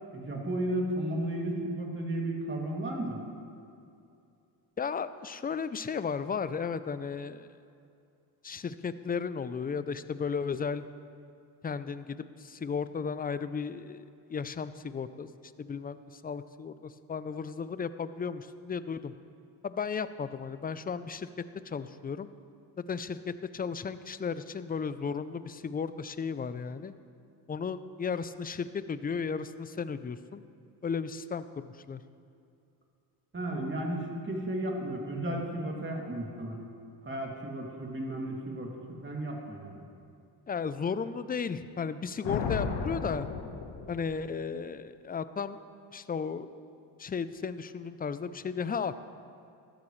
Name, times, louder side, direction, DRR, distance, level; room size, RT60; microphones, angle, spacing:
voice 1, 0.1-3.2 33.3-36.6 37.0-39.8, right 1 dB, 25° right, -1 dB, 2.7 m, -34 dB
voice 2, 4.8-7.5 8.4-10.8 11.6-14.0 14.3-15.3 15.6-16.0 16.2-19.1 19.6-21.3 21.7-22.3 22.9-23.2 23.5-26.9 27.5-30.4 30.8-32.0 40.5-43.3 43.9-45.6 45.9-46.5 47.0-48.9, left 6 dB, 20° left, 13 dB, 0.5 m, -34 dB
Thunder, 42.2-44.4, left 5 dB, 65° left, 1.3 m, -34 dB
13.5 x 13.0 x 3.2 m, 2.5 s
supercardioid pair, 70°, 45 cm